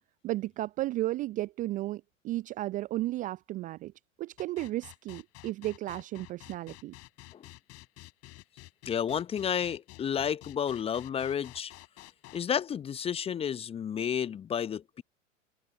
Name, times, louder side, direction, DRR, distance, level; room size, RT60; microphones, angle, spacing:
voice 1, 0.2-3.9 4.2-6.9, right 16 dB, 20° right, 0.6 m, -34 dB
sound 1, 4.4-12.4, left 21 dB, 40° left, 7.9 m, -50 dB
voice 2, 8.9-11.7 12.3-15.0, left 8 dB, 15° left, 0.8 m, -31 dB
figure-of-eight pair, 100°, 38 cm